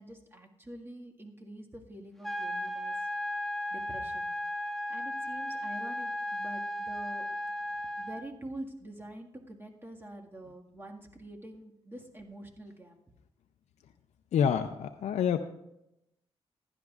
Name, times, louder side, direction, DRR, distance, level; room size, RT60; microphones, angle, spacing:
voice 1, 0.0-2.9 3.7-4.3 4.9-7.4 8.0-12.9, right 1 dB, 20° right, 1 dB, 1.7 m, -46 dB
sound 1, 2.2-8.2, left 1 dB, 5° left, 1.4 m, -35 dB
voice 2, 14.3-15.4, left 8 dB, 85° left, 6 dB, 0.5 m, -27 dB
15.5 x 11.0 x 2.4 m, 0.85 s
cardioid pair, 70°, 11 cm